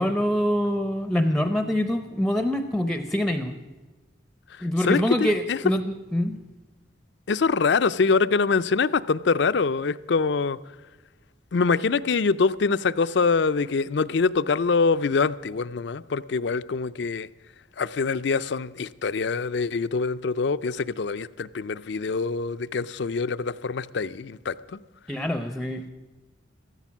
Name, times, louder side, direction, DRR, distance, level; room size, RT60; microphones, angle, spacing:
voice 1, 0.0-3.5 4.6-6.4 25.1-25.9, equal, ahead, 0.6 m, -25 dB
voice 2, 4.8-5.6 7.3-10.6 11.5-17.3 17.8-24.8, left 4 dB, 60° left, 0.5 m, -24 dB
14.5 x 13.5 x 7.2 m
head